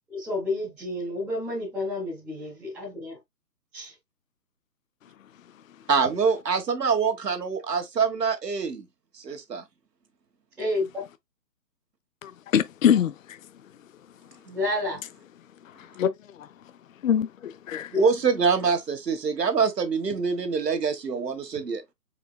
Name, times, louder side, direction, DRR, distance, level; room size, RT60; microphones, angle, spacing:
voice 1, 0.1-3.2 3.7-3.9 10.6-11.0 14.5-15.0 17.9-18.1, left 2 dB, ahead, 0.6 m, -30 dB
voice 2, 5.9-8.8 9.2-9.6 17.9-21.8, right 5 dB, 75° right, 1.5 m, -25 dB
voice 3, 12.2-13.4 15.8-16.5 17.0-17.9, left 9 dB, 55° left, 0.5 m, -25 dB
4.9 x 4.4 x 2.3 m
figure-of-eight pair, 145°, 48 cm